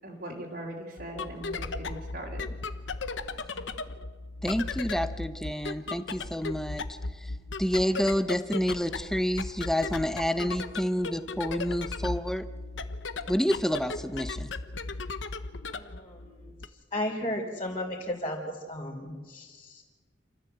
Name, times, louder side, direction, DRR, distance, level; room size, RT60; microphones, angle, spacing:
voice 1, 0.0-2.4, right 1 dB, 55° right, -4 dB, 3.2 m, -40 dB
sound 1, 1.0-16.7, left 3 dB, 75° left, 1.0 m, -37 dB
voice 2, 4.4-7.0 7.6-12.4 13.3-14.5, equal, ahead, 11 dB, 0.8 m, -29 dB
voice 3, 15.7-16.5 16.9-19.8, left 1 dB, 30° left, -5 dB, 3.4 m, -35 dB
28.5 x 13.5 x 8.0 m, 1.4 s
head